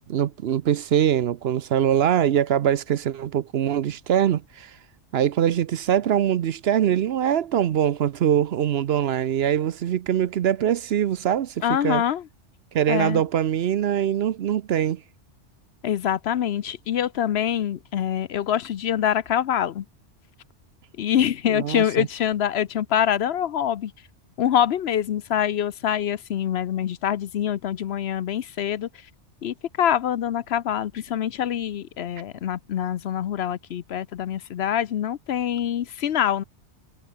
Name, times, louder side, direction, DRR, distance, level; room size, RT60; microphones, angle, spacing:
voice 1, 0.1-4.7 5.1-12.0 12.7-15.0 21.5-22.1, right 10 dB, 65° right, 0.8 m, -23 dB
voice 2, 11.6-12.2 12.9-13.2 15.8-19.8 21.0-23.9 24.4-28.9 29.4-36.4, left 10 dB, 65° left, 0.9 m, -25 dB
omnidirectional pair, 1.2 m